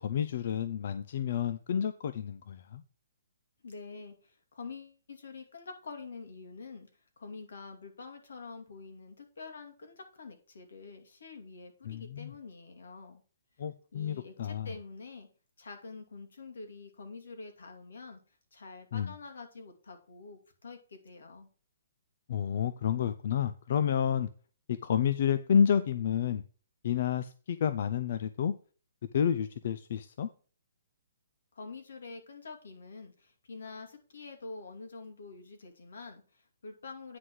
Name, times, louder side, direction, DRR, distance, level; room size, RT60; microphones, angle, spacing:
voice 1, 0.0-2.8 11.9-12.3 13.6-14.7 18.9-19.1 22.3-24.3 24.7-26.4 26.8-28.5 29.1-30.3, left 8 dB, 50° left, 0.5 m, -30 dB
voice 2, 3.6-6.9 7.2-13.2 13.9-15.3 15.6-18.2 18.5-21.5 31.5-37.2, left 4 dB, 80° left, 2.5 m, -46 dB
9.5 x 4.0 x 6.2 m
hypercardioid pair, 160°, 0 cm